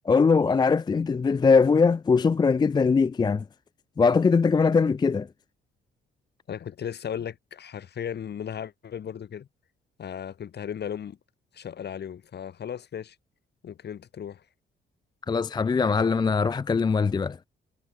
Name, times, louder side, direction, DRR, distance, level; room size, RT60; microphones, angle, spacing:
voice 1, 0.1-3.4 4.0-5.3 15.3-17.4, left 5 dB, 20° left, 0.4 m, -21 dB
voice 2, 6.5-9.5 10.0-11.2 11.5-13.2 13.6-14.5, left 8 dB, 55° left, 5.5 m, -36 dB
cardioid pair, 90°, 20 cm